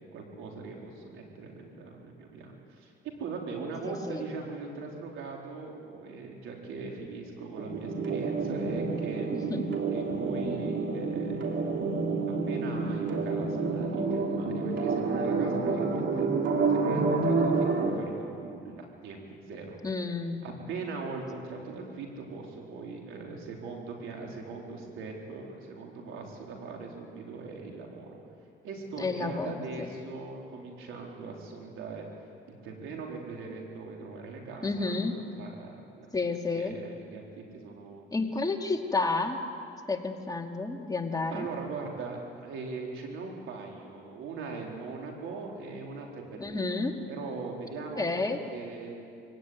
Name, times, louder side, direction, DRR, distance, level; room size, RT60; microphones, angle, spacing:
voice 1, 0.0-2.9 3.2-9.3 9.9-11.6 12.5-16.3 16.7-19.8 20.4-28.2 28.6-32.0 32.5-36.1 36.5-38.1 41.3-46.8 47.1-48.9, right 4 dB, 90° right, 0 dB, 4.1 m, -40 dB
voice 2, 3.9-4.2 9.3-9.6 19.8-20.5 29.0-29.9 34.6-35.1 36.1-36.8 38.1-39.4 39.9-41.5 46.4-47.0 48.0-48.4, left 3 dB, 20° left, 2 dB, 2.4 m, -31 dB
sound 1, 7.5-17.9, right 4 dB, 70° right, 3.2 m, -29 dB
23.5 x 17.0 x 9.5 m, 2.5 s
cardioid pair, 90°, 20 cm